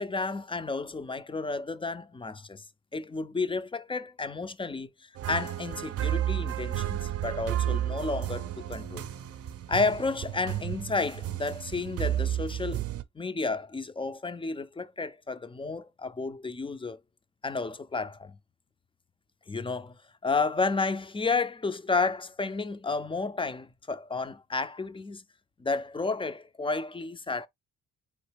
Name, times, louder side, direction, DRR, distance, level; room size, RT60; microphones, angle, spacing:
voice 1, 0.0-2.6 2.9-4.9 5.3-9.1 9.7-12.8 13.2-17.0 17.4-18.3 19.5-20.0 20.2-25.2 25.6-27.5, left 3 dB, 15° left, 0.5 m, -31 dB
sound 1, 5.2-13.0, right 11 dB, 50° right, 0.6 m, -32 dB
3.9 x 3.1 x 3.3 m
cardioid pair, 90°, 30 cm